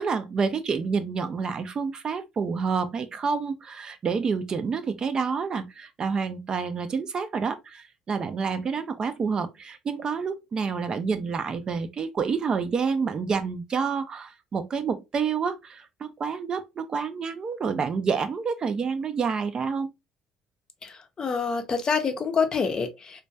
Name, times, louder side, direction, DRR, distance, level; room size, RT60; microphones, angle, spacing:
voice 1, 0.0-19.9, right 5 dB, 40° right, 0.3 m, -28 dB
voice 2, 20.8-23.2, left 5 dB, 35° left, 0.5 m, -27 dB
2.2 x 2.2 x 2.5 m
cardioid pair, 100°, 2 cm